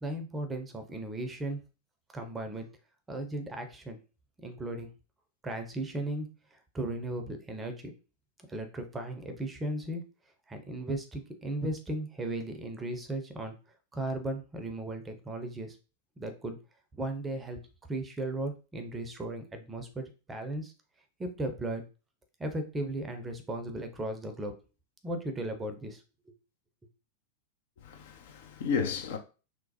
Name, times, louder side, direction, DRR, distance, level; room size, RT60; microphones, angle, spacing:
voice 1, 0.0-1.6 2.1-2.7 3.1-4.0 4.4-4.9 5.4-7.9 8.5-10.0 10.5-13.5 13.9-15.8 16.2-16.6 16.9-17.6 17.9-20.7 21.2-21.8 22.4-24.5 25.0-26.0 26.3-26.4, right 1 dB, 15° right, 0.6 m, -36 dB
voice 2, 27.8-29.2, left 6 dB, 55° left, 0.5 m, -33 dB
3.1 x 2.0 x 2.7 m
figure-of-eight pair, 90°, 0 cm